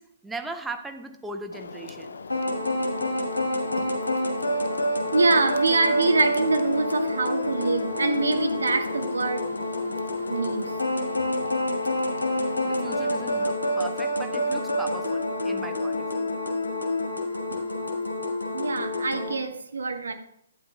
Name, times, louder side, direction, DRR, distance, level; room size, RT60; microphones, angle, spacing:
voice 1, 0.0-2.1 12.7-16.3, right 2 dB, 5° right, 6 dB, 0.7 m, -38 dB
sound 1, 1.5-13.5, left 4 dB, 65° left, 0.5 m, -41 dB
sound 2, 2.3-19.3, left 1 dB, 85° left, 1.8 m, -28 dB
voice 2, 5.1-9.5 10.3-10.7 18.5-20.1, right 3 dB, 75° right, 6 dB, 1.2 m, -24 dB
11.5 x 8.8 x 2.3 m, 0.72 s
figure-of-eight pair, 125°, 0 cm